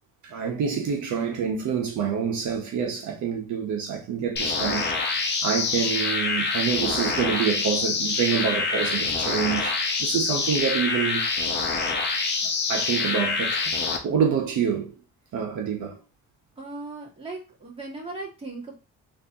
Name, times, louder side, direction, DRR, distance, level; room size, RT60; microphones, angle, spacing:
voice 1, 0.2-11.3 12.4-13.8 14.0-14.9 15.3-16.0, right 7 dB, 75° right, 1.0 m, -27 dB
sound 1, 4.4-14.0, left 4 dB, 35° left, 0.9 m, -26 dB
voice 2, 16.6-18.8, right 3 dB, 20° right, 2.0 m, -37 dB
3.7 x 2.9 x 2.8 m
cardioid pair, 90°, 30 cm